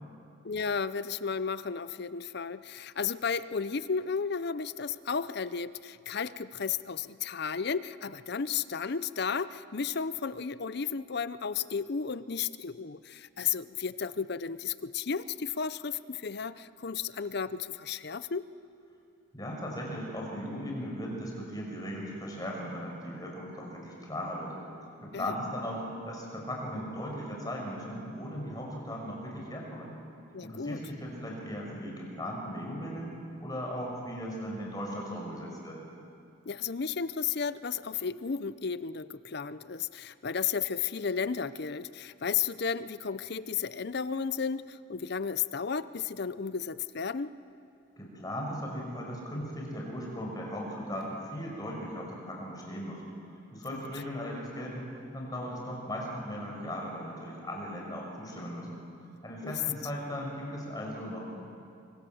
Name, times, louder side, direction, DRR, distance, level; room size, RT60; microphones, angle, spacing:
voice 1, 0.4-18.4 25.1-25.3 30.3-30.8 36.5-47.3 53.7-53.8 59.4-59.5, left 6 dB, 50° left, 15 dB, 0.6 m, -33 dB
voice 2, 19.3-24.6 25.0-30.0 30.4-35.8 48.0-53.0 53.5-58.8 59.2-61.2, equal, 20° left, -1 dB, 6.0 m, -37 dB
25.5 x 24.5 x 7.9 m, 2.5 s
head